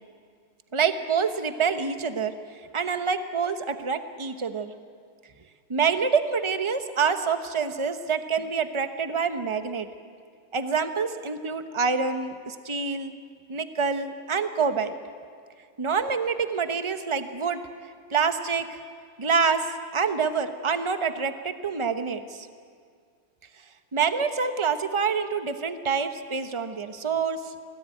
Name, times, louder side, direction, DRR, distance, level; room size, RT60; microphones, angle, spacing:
voice 1, 0.7-2.3 2.7-4.7 5.7-9.9 10.5-13.1 13.5-15.0 15.8-17.6 18.1-18.8 19.2-19.6 19.9-22.5 23.9-27.4, right 5 dB, 30° right, 9 dB, 0.5 m, -26 dB
24.5 x 18.0 x 9.1 m, 2.1 s
omnidirectional pair, 2.2 m